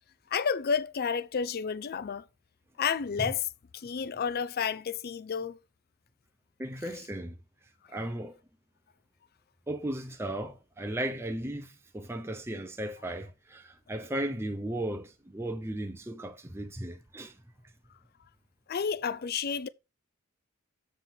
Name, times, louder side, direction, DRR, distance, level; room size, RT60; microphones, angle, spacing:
voice 1, 0.3-2.2 2.8-5.6 18.7-19.7, left 6 dB, 45° left, 0.5 m, -31 dB
voice 2, 6.6-7.4 7.9-8.4 9.7-17.4, right 1 dB, 10° right, 0.7 m, -36 dB
7.5 x 3.7 x 5.8 m
head